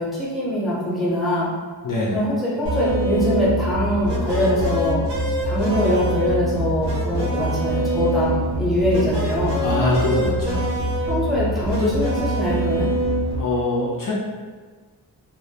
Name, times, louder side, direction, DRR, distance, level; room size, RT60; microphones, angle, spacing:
voice 1, 0.0-1.5 2.1-5.0 5.4-9.6 11.0-12.9, left 1 dB, ahead, -8 dB, 0.7 m, -23 dB
voice 2, 1.8-2.2 9.6-10.6 13.4-14.1, left 2 dB, 55° left, -6 dB, 0.5 m, -22 dB
sound 1, 2.7-13.4, right 1 dB, 80° right, 0.6 m, -24 dB
2.1 x 2.1 x 2.8 m, 1.5 s
wide cardioid pair, 125°, 41 cm